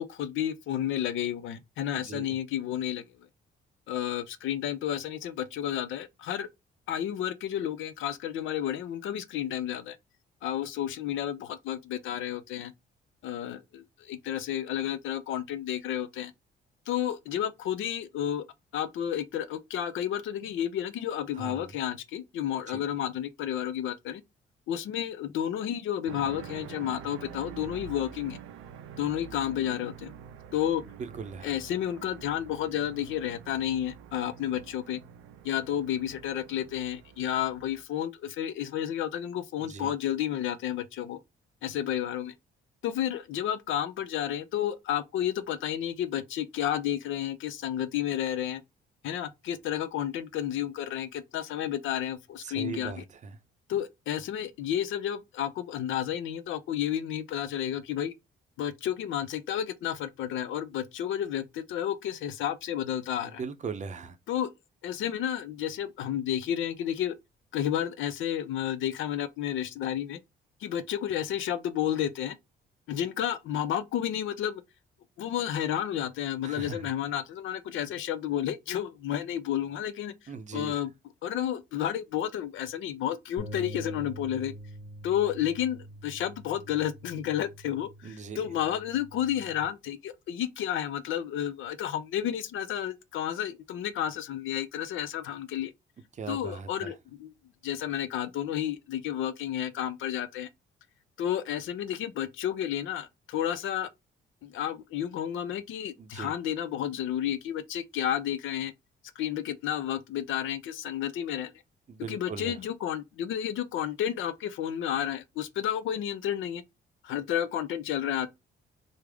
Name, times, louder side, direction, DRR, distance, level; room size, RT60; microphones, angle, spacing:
voice 1, 0.0-3.0 3.9-6.5 6.9-10.0 10.4-12.7 13.2-16.3 16.9-18.4 18.7-24.2 24.7-28.4 29.0-30.2 30.5-30.8 31.4-35.0 35.4-41.2 41.6-42.3 42.8-48.6 49.0-53.0 53.7-58.1 58.6-63.4 64.3-64.5 64.8-67.2 67.5-70.2 70.6-72.4 72.9-74.6 75.2-80.1 80.5-80.9 81.2-84.5 85.0-95.7 96.3-96.9 97.2-97.3 97.6-100.5 101.2-103.9 104.4-108.7 109.2-111.5 112.1-116.6 117.0-118.3, left 10 dB, 75° left, 0.5 m, -31 dB
voice 2, 1.9-2.4 21.3-21.8 22.7-22.8 31.0-31.5 39.6-39.9 52.4-53.4 63.2-64.2 76.4-76.9 80.3-80.8 88.0-88.5 96.1-97.0 106.0-106.3 111.9-112.6, right 5 dB, 35° right, 0.5 m, -39 dB
sound 1, 26.0-37.8, right 8 dB, 90° right, 0.4 m, -47 dB
sound 2, 83.4-89.6, equal, 55° left, 1.0 m, -45 dB
3.3 x 2.0 x 3.4 m
cardioid pair, 90°, 20 cm